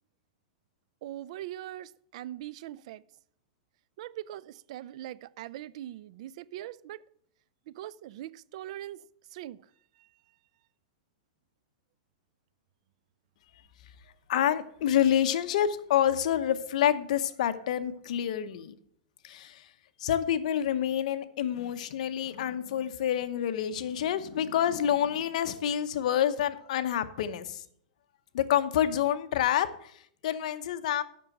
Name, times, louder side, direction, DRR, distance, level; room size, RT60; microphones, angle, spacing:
voice 1, 1.0-3.0 4.0-7.0 7.7-9.0 9.3-9.7 10.0-10.1, right 13 dB, 50° right, 0.3 m, -41 dB
voice 2, 14.3-18.7 19.2-19.7 20.0-27.6 28.3-31.0, left 10 dB, 60° left, 0.8 m, -28 dB
7.7 x 6.1 x 7.7 m
supercardioid pair, 155°, 4 cm